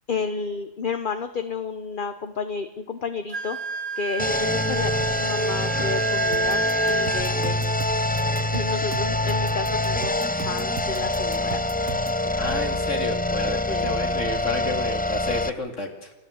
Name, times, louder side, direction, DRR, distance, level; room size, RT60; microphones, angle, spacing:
voice 1, 0.1-3.6 4.0-8.2 8.5-12.4 13.7-13.9, left 5 dB, 40° left, 9 dB, 1.1 m, -32 dB
Wind instrument woodwind instrument, 3.3-7.2, right 4 dB, 45° right, 2.1 m, -29 dB
sound 1, 4.2-15.5, left 1 dB, 15° left, 0.3 m, -25 dB
sound 2, 6.3-12.2, right 8 dB, 85° right, 1.4 m, -38 dB
voice 2, 12.4-16.1, left 2 dB, 65° left, 3 dB, 2.9 m, -31 dB
29.5 x 14.0 x 7.9 m, 1.1 s
omnidirectional pair, 1.4 m